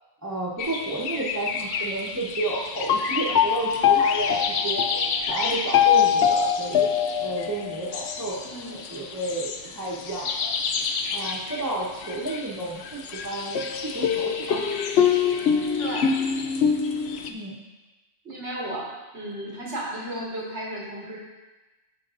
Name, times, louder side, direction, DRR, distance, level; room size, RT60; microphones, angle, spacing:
voice 1, 0.2-6.9 7.2-8.4 8.7-10.5 11.1-14.7 17.3-17.6, right 2 dB, 15° right, -8 dB, 1.1 m, -31 dB
sound 1, 0.6-17.3, left 7 dB, 70° left, 0.9 m, -25 dB
voice 2, 8.4-8.9 15.8-16.1 18.2-18.9 19.1-21.2, right 1 dB, 85° right, -6 dB, 2.3 m, -34 dB
12.5 x 5.4 x 2.6 m, 1.1 s
omnidirectional pair, 1.2 m